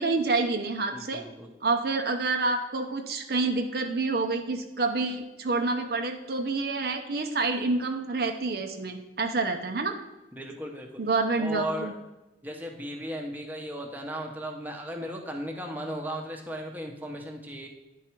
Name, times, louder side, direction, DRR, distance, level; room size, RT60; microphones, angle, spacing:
voice 1, 0.0-1.3 1.6-10.0 11.0-11.9, right 3 dB, 55° right, 5 dB, 0.6 m, -28 dB
voice 2, 0.9-1.5 10.3-10.9 11.4-11.9 12.4-17.7, equal, 10° right, 2 dB, 0.8 m, -36 dB
9.9 x 4.6 x 4.5 m, 1.0 s
head